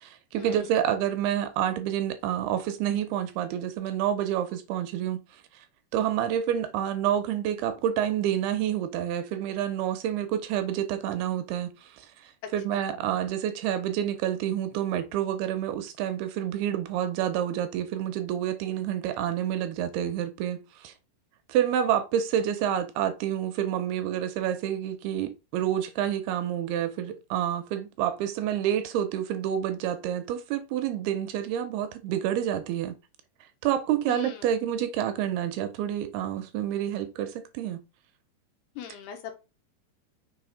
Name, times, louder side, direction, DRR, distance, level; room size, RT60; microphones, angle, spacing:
voice 1, 0.0-5.2 5.5-5.6 5.9-20.9 21.5-32.9 33.6-37.8, right 10 dB, 80° right, 2.5 m, -28 dB
voice 2, 34.1-34.5 38.8-39.3, left 9 dB, 75° left, 3.2 m, -40 dB
6.3 x 4.2 x 5.0 m
omnidirectional pair, 4.9 m